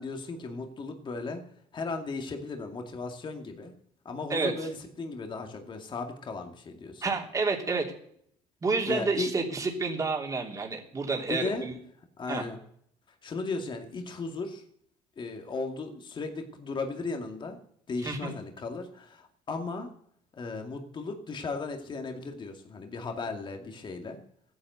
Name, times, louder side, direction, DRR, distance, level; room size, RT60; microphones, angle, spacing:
voice 1, 0.0-1.4 1.7-3.7 4.0-7.1 8.9-9.3 11.3-11.7 12.2-12.6 13.1-14.6 15.2-17.6 17.9-19.9 20.4-24.2, left 3 dB, 40° left, 4 dB, 2.2 m, -36 dB
voice 2, 4.3-4.7 7.0-7.9 8.6-11.8 12.3-12.4 18.0-18.3, right 4 dB, 25° right, 0 dB, 3.1 m, -29 dB
14.0 x 10.0 x 8.0 m, 0.67 s
supercardioid pair, 85°, 13 cm